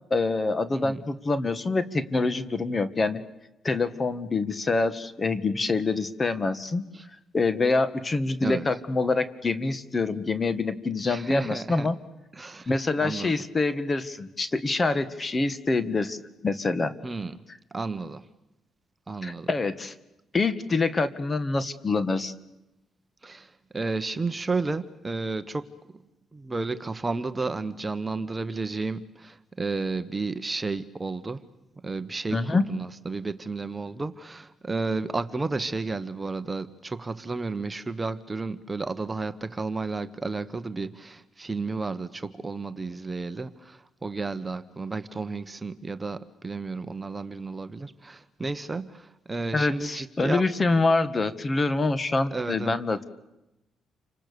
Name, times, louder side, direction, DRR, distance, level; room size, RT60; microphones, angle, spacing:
voice 1, 0.1-3.2 3.6-6.9 7.3-12.0 12.7-16.2 16.4-16.9 19.2-19.9 20.3-22.3 32.3-32.7 49.5-53.0, left 3 dB, 30° left, 1.8 m, -26 dB
voice 2, 11.1-11.9 12.4-12.7 13.0-13.3 17.0-17.4 17.7-18.2 19.1-19.5 23.2-25.7 26.3-31.4 31.8-50.4 52.3-52.8, right 3 dB, 20° right, 1.2 m, -32 dB
29.0 x 25.5 x 7.0 m
cardioid pair, 90°, 0 cm